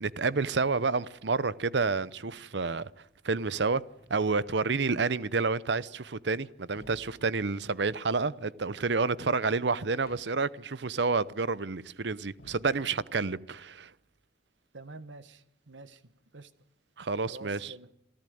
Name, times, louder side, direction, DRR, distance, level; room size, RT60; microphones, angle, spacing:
voice 1, 0.0-2.9 3.2-3.8 4.1-13.9 17.0-17.7, right 4 dB, 70° right, 0.8 m, -29 dB
sound 1, 4.0-4.8 6.1-7.9 9.8-10.6 10.9-11.0 12.4-13.5, equal, 60° left, 4.0 m, -57 dB
voice 2, 14.7-16.5 17.3-17.9, right 2 dB, 90° right, 1.5 m, -48 dB
27.5 x 14.5 x 9.4 m
head